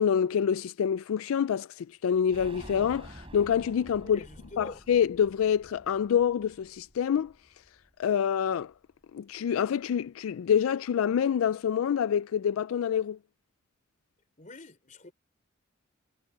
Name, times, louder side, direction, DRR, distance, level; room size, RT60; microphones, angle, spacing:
voice 1, 0.0-4.2 4.6-7.3 8.0-8.7 9.1-13.2, left 8 dB, 85° left, 0.3 m, -26 dB
sound 1, 2.3-7.9 8.2-8.3 8.6-8.7, right 1 dB, 25° right, 7.3 m, -49 dB
voice 2, 4.0-4.8 14.4-15.1, left 2 dB, 40° left, 3.8 m, -45 dB
head